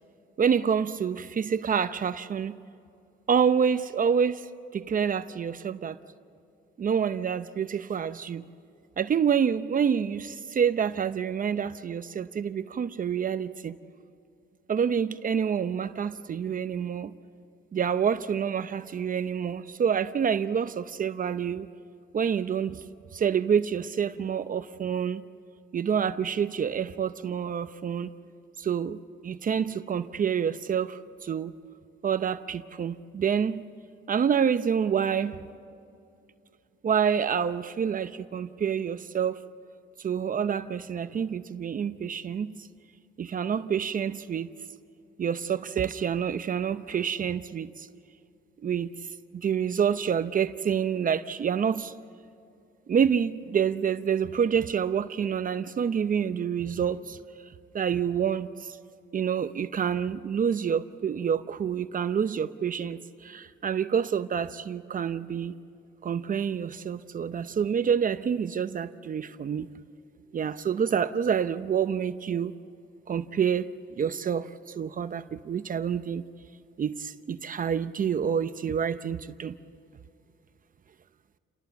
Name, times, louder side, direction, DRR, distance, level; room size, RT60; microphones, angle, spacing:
voice 1, 0.4-2.6 3.3-4.5 4.7-6.0 6.8-8.4 9.0-13.8 14.7-17.1 17.7-21.7 22.1-22.8 23.1-25.2 25.7-28.1 28.6-31.6 32.0-33.6 34.1-35.4 36.8-39.4 40.0-42.7 43.2-44.5 45.2-47.9 48.6-48.9 49.3-51.9 52.9-57.2 57.7-58.8 59.1-65.5 66.0-69.7 70.3-72.5 73.1-74.5 74.7-76.2 76.8-79.5, right 7 dB, 45° right, 12 dB, 0.7 m, -27 dB
28.5 x 19.0 x 7.1 m, 2.5 s
cardioid pair, 90°, 20 cm